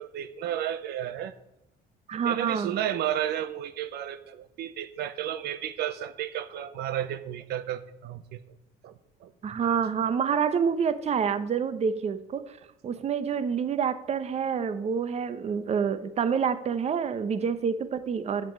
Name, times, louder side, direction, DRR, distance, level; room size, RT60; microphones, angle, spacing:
voice 1, 0.0-1.3 2.2-8.4 8.8-8.9 9.2-9.3, right 11 dB, 75° right, 12 dB, 0.7 m, -32 dB
voice 2, 2.1-2.8 9.4-12.6 12.8-18.5, right 7 dB, 40° right, 12 dB, 0.8 m, -27 dB
7.6 x 7.4 x 8.4 m, 0.84 s
cardioid pair, 110°, 17 cm